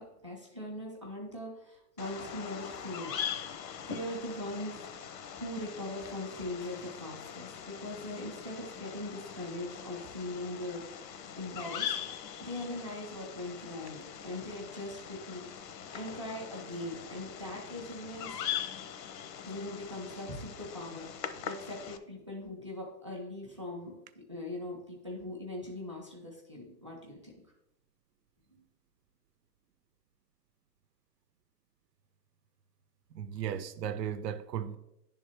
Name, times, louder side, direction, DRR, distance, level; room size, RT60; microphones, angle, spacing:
voice 1, 0.0-3.1 3.8-12.0 12.4-15.5 15.9-18.3 19.5-23.9 24.3-27.2, left 1 dB, 20° right, 0.3 m, -41 dB
Bird vocalization bird call bird song, 2.0-22.0, left 8 dB, 85° left, 0.8 m, -42 dB
voice 2, 33.1-34.8, right 9 dB, 80° right, 0.7 m, -35 dB
10.0 x 3.6 x 3.4 m
hypercardioid pair, 170°, 49 cm